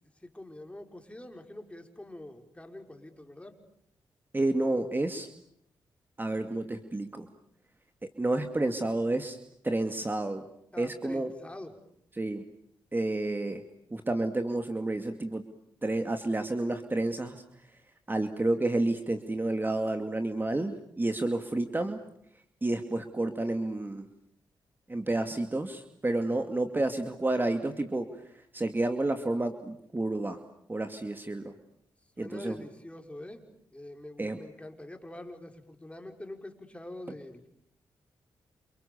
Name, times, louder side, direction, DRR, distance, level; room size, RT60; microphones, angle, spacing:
voice 1, 0.2-3.6 10.7-11.8 32.2-33.4 33.7-37.5, left 1 dB, 15° left, 4 dB, 5.2 m, -45 dB
voice 2, 4.3-5.3 6.2-7.3 8.2-9.4 9.6-10.5 10.8-11.3 12.2-12.4 12.9-13.6 13.9-15.4 15.8-17.4 18.1-22.0 22.6-24.1 24.9-30.4 30.7-31.5 32.2-32.6 34.2-34.4, right 2 dB, 25° right, 6 dB, 2.4 m, -30 dB
29.0 x 28.5 x 7.0 m, 0.72 s
cardioid pair, 55°, 9 cm